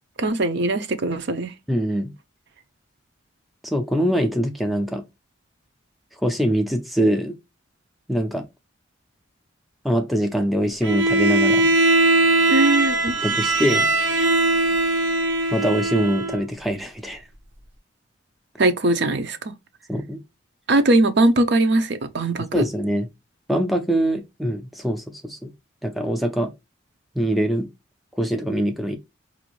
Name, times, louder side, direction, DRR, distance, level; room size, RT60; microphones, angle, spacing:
voice 1, 0.2-1.5 12.5-13.2 18.6-19.4 20.7-22.6, right 2 dB, 60° right, 0.6 m, -20 dB
voice 2, 1.7-2.1 3.6-5.0 6.2-7.3 8.1-8.5 9.8-11.7 13.2-13.9 15.5-17.2 19.9-20.2 22.5-23.1 23.5-25.5 25.8-26.5 27.2-27.7 28.1-29.0, equal, ahead, 0.5 m, -23 dB
Bowed string instrument, 10.8-16.4, right 2 dB, 80° right, 0.9 m, -20 dB
4.7 x 2.6 x 3.0 m
head